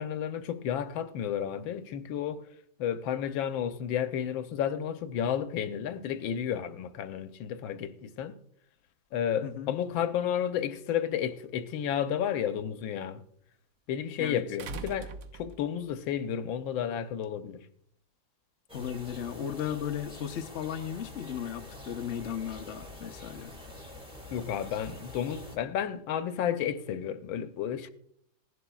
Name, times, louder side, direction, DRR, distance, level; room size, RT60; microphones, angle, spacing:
voice 1, 0.0-2.4 2.8-8.3 9.1-13.2 13.9-17.6 24.3-27.9, left 9 dB, 85° left, 1.5 m, -32 dB
voice 2, 9.4-9.7 14.2-14.4 18.7-23.5, left 9 dB, 55° left, 0.8 m, -36 dB
sound 1, 11.3-11.4 14.6-15.9 17.2-17.3, right 5 dB, 75° right, 0.7 m, -41 dB
sound 2, 18.7-25.6, left 1 dB, 5° right, 1.6 m, -46 dB
17.5 x 11.0 x 2.3 m
omnidirectional pair, 2.1 m